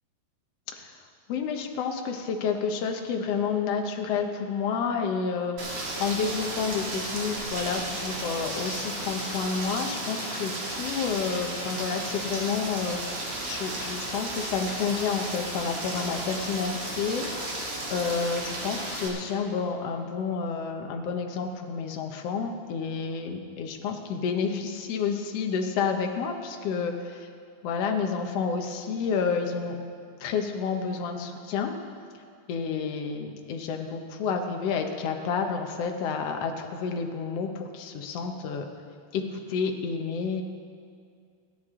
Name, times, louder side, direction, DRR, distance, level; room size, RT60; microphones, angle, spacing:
voice 1, 1.3-27.3 27.6-29.8 30.2-31.8 32.5-38.7 39.1-40.4, left 5 dB, 70° left, 4 dB, 1.6 m, -30 dB
Rain, 5.6-19.1, right 1 dB, 45° right, 2.9 m, -34 dB
28.0 x 9.4 x 3.7 m, 2.3 s
omnidirectional pair, 4.0 m